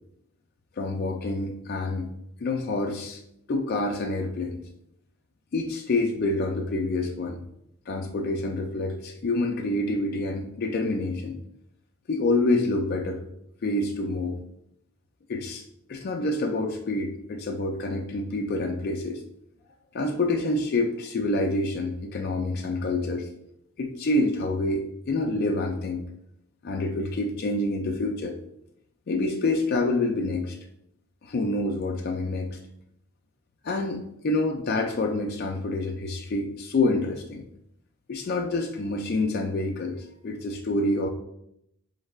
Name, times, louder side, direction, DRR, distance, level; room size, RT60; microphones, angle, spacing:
voice 1, 0.8-2.1 2.4-3.2 3.5-4.6 5.5-7.4 7.9-11.4 12.1-13.2 13.6-14.4 15.3-15.6 15.9-19.2 19.9-23.3 23.8-26.0 26.6-28.4 29.1-30.6 31.2-32.6 33.6-37.4 38.1-41.1, left 2 dB, 45° left, 3 dB, 0.4 m, -27 dB
4.3 x 3.2 x 2.4 m, 0.76 s
head